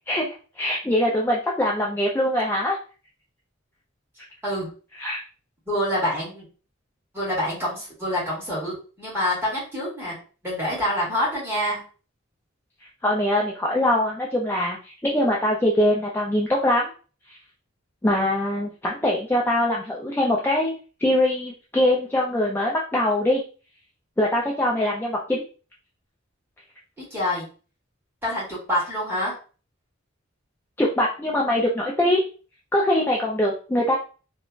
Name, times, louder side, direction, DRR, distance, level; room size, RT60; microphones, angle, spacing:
voice 1, 0.6-2.8 5.0-5.2 13.0-16.9 17.3-17.4 18.0-20.7 21.0-23.4 24.2-25.4 30.8-32.2 32.7-34.0, left 1 dB, 10° left, -2 dB, 0.3 m, -22 dB
voice 2, 5.7-6.4 7.1-10.2 10.4-11.8 27.1-27.5 28.2-29.4, left 1 dB, 10° right, -7 dB, 1.5 m, -26 dB
3.1 x 2.1 x 2.3 m, 0.37 s
head